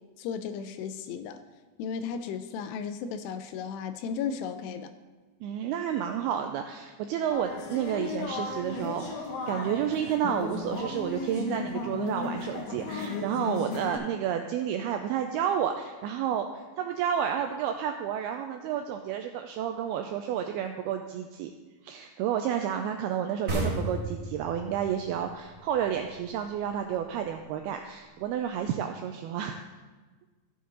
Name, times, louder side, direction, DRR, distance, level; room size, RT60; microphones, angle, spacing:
voice 1, 0.2-1.4 1.8-4.9, left 6 dB, 80° left, 10 dB, 2.6 m, -35 dB
voice 2, 5.4-21.5 21.8-29.6, right 9 dB, 90° right, 5 dB, 2.2 m, -31 dB
sound 1, 7.3-14.0, left 3 dB, 60° left, 2.4 m, -35 dB
sound 2, 23.5-26.9, right 2 dB, 45° right, 1.1 m, -34 dB
14.0 x 7.7 x 3.9 m, 1.3 s
omnidirectional pair, 5.0 m